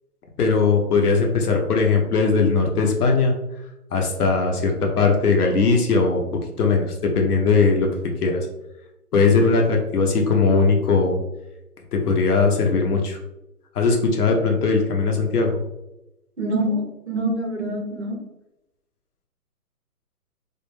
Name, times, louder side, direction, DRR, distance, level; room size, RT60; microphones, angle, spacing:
voice 1, 0.4-3.3 3.9-7.9 8.2-8.5 9.1-11.2 11.9-13.2 13.7-15.6, left 4 dB, 70° left, 2 dB, 0.7 m, -19 dB
voice 2, 16.4-18.3, right 1 dB, 50° right, 1 dB, 0.4 m, -25 dB
2.3 x 2.2 x 3.0 m, 0.91 s
hypercardioid pair, 175°, 47 cm